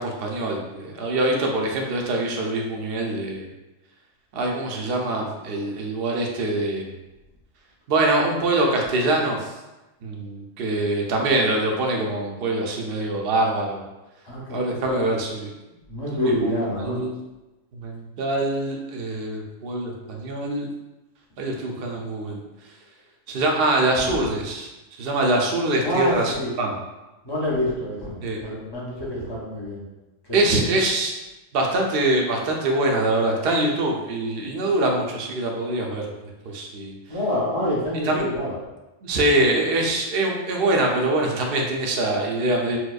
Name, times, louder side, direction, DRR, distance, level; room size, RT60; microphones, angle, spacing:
voice 1, 0.0-3.5 4.3-6.9 7.9-9.5 10.0-13.8 14.5-15.5 16.1-17.1 17.7-20.7 21.4-22.4 23.3-26.8 28.2-28.4 30.3-31.1 31.5-36.0 36.5-36.9 38.0-38.3 39.0-42.8, right 2 dB, 60° right, 0 dB, 0.7 m, -24 dB
voice 2, 14.3-15.0 15.9-17.0 21.6-22.0 24.0-24.1 25.8-26.5 27.2-29.8 37.1-38.5, left 1 dB, 25° left, -7 dB, 0.7 m, -27 dB
4.4 x 2.1 x 2.4 m, 1.0 s
omnidirectional pair, 1.3 m